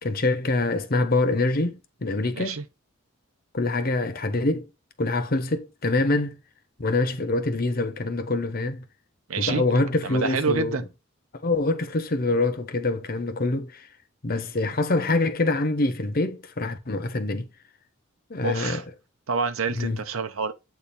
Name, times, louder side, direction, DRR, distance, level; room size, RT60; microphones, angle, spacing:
voice 1, 0.0-2.6 3.5-4.7 5.0-6.4 6.8-8.8 9.4-10.8 11.4-13.9 14.2-17.5 18.3-18.8 19.8-20.0, left 2 dB, 45° left, 0.9 m, -25 dB
voice 2, 2.3-2.6 9.3-9.6 10.0-10.8 18.4-18.8 19.3-20.5, right 4 dB, 80° right, 0.7 m, -27 dB
8.5 x 3.6 x 4.2 m
head